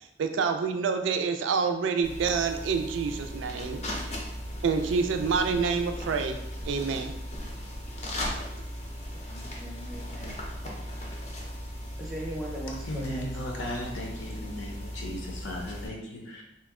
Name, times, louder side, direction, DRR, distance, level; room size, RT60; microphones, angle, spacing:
voice 1, 0.2-3.8 4.6-6.4 6.7-7.1, right 5 dB, 80° right, 6 dB, 0.3 m, -27 dB
sound 1, 2.0-15.9, equal, 35° left, 0.5 m, -37 dB
voice 2, 9.0-10.4 12.0-13.3, right 1 dB, ahead, -5 dB, 0.7 m, -39 dB
voice 3, 12.8-16.4, left 1 dB, 80° left, 0 dB, 0.7 m, -36 dB
2.8 x 2.1 x 3.5 m, 0.84 s
head